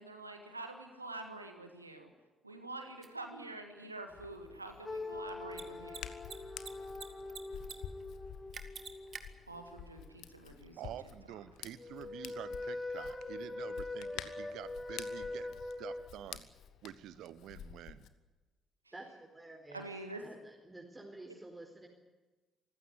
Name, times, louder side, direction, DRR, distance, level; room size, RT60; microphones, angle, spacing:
voice 1, 0.0-2.1 2.4-6.1 9.5-10.9 19.7-20.2, right 2 dB, 85° right, 5 dB, 1.6 m, -46 dB
Mechanisms, 3.0-3.1 5.4-5.6 5.9-6.0 6.2-7.0 7.3-7.7 8.0-8.1 8.5-9.2, right 6 dB, 40° right, 2.1 m, -45 dB
Hands, 4.1-18.1, left 9 dB, 60° left, 1.2 m, -51 dB
sound 1, 4.9-9.8 11.8-16.1, left 2 dB, 30° left, 4.2 m, -43 dB
voice 2, 10.8-16.5 16.8-18.1, right 11 dB, 60° right, 17 dB, 1.0 m, -48 dB
voice 3, 18.9-19.8 20.2-21.9, right 2 dB, 20° right, 1 dB, 4.2 m, -50 dB
25.0 x 15.5 x 9.9 m, 1.2 s
figure-of-eight pair, 45°, 0 cm